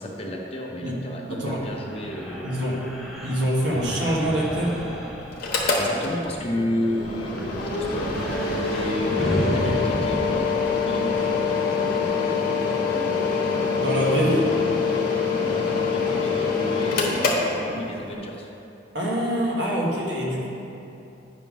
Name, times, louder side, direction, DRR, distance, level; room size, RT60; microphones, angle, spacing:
voice 1, 0.0-2.6 5.7-8.2 8.7-10.5 10.8-11.3 15.4-17.4 17.6-18.5, left 1 dB, 30° left, -1 dB, 0.8 m, -32 dB
voice 2, 1.3-1.6 2.4-2.8 3.2-4.7 9.2-9.8 13.7-14.5 18.9-20.5, equal, 65° right, -4 dB, 1.4 m, -25 dB
sound 1, 1.8-6.5 6.9-12.1, equal, ahead, 0.7 m, -33 dB
Mechanical fan, 5.3-18.2, left 4 dB, 50° left, 1.1 m, -25 dB
9.3 x 3.7 x 6.0 m, 2.8 s
head